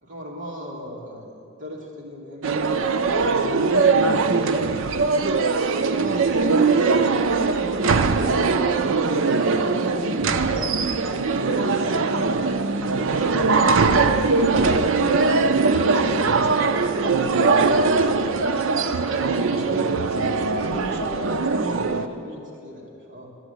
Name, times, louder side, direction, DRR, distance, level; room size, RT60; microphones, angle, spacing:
voice 1, 0.0-2.6 3.3-4.7 5.7-7.4 7.7-9.2 9.5-10.2 11.5-12.3 12.8-13.9 20.3-23.3, equal, 40° right, -3 dB, 2.3 m, -39 dB
sound 1, 2.4-22.1, right 4 dB, 65° right, 0.5 m, -21 dB
voice 2, 9.9-10.2 10.5-10.8 13.3-14.1 15.8-21.7, left 2 dB, 30° left, 2 dB, 0.9 m, -38 dB
11.5 x 7.9 x 8.0 m, 2.6 s
head